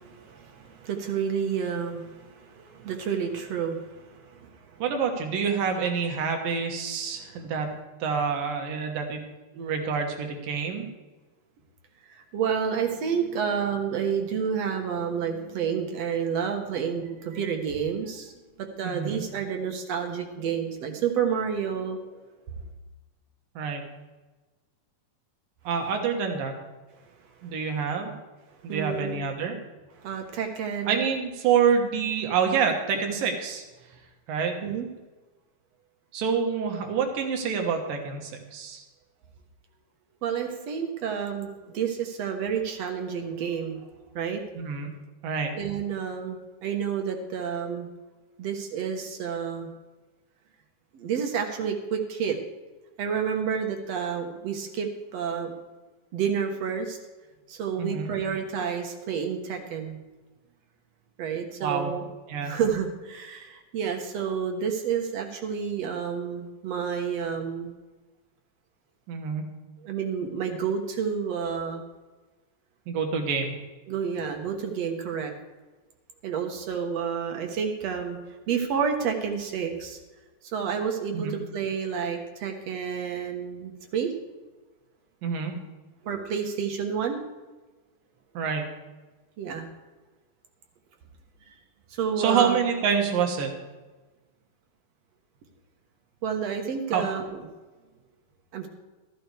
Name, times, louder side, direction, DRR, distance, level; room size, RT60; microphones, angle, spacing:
voice 1, 0.0-4.8 12.1-18.3 18.6-22.0 28.7-29.2 30.0-31.0 34.6-34.9 40.2-43.9 44.2-44.4 45.6-47.9 48.4-49.7 50.9-52.4 53.0-55.5 56.1-57.0 57.5-60.0 61.2-62.1 62.4-67.8 69.8-71.8 73.9-75.3 76.2-78.2 78.5-80.0 80.5-84.1 86.0-87.2 89.4-89.7 91.5-91.6 91.9-92.6 96.2-97.5 98.5-98.7, right 7 dB, 60° right, 4 dB, 2.0 m, -30 dB
voice 2, 4.8-9.2 9.6-10.9 18.8-19.2 23.6-23.8 25.6-26.5 27.4-28.1 28.6-29.6 30.9-33.6 34.3-34.6 36.1-38.8 44.6-45.0 45.2-45.5 57.8-58.1 61.6-61.9 62.3-62.5 69.1-69.5 72.9-73.6 81.1-81.3 85.2-85.6 88.3-88.7 92.2-93.5 96.9-97.1, right 6 dB, 85° right, 3 dB, 3.2 m, -27 dB
13.5 x 13.5 x 3.4 m, 1.2 s
omnidirectional pair, 3.9 m